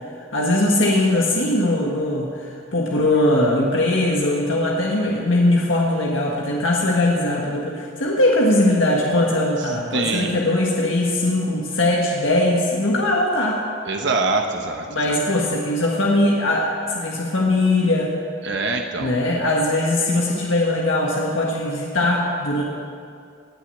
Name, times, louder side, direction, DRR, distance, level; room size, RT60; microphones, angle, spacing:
voice 1, 0.2-13.6 14.9-18.1 19.0-22.6, left 1 dB, 75° left, -2 dB, 1.6 m, -20 dB
voice 2, 9.9-10.3 13.9-15.2 18.4-19.1, right 3 dB, 60° right, 3 dB, 1.0 m, -24 dB
18.5 x 6.4 x 8.4 m, 2.3 s
head